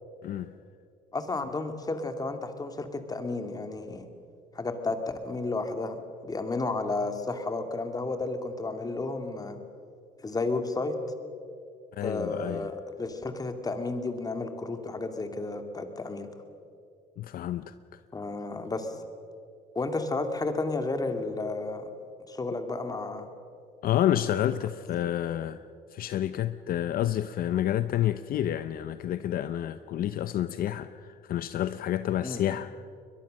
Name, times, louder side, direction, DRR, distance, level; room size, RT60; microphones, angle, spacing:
voice 1, 0.2-0.5 11.9-12.7 17.2-17.7 23.8-25.6 25.9-32.7, left 11 dB, 60° left, 0.7 m, -29 dB
voice 2, 1.1-4.1 4.5-5.0 5.2-6.0 6.2-9.6 10.2-10.9 12.0-16.3 18.1-18.9 19.7-21.9 22.3-23.3 24.5-24.6 32.2-32.4, left 3 dB, 20° left, 2.3 m, -32 dB
22.5 x 21.5 x 6.5 m
cardioid pair, 110°, 17 cm